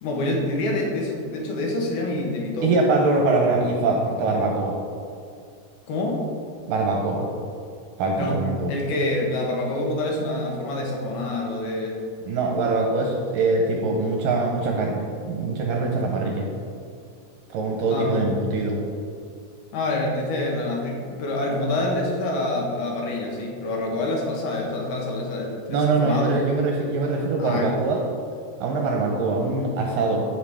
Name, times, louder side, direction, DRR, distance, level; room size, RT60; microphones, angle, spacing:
voice 1, 0.0-2.7 5.9-6.2 8.2-8.4 8.7-12.0 17.9-18.3 19.7-26.4 27.4-27.7, left 2 dB, 75° left, -1 dB, 3.1 m, -26 dB
voice 2, 2.6-4.8 6.7-7.3 8.0-8.8 12.3-16.5 17.5-18.8 25.7-28.0 28.6-30.3, right 3 dB, 75° right, 0 dB, 2.2 m, -23 dB
15.0 x 5.4 x 3.5 m, 2.3 s
omnidirectional pair, 4.5 m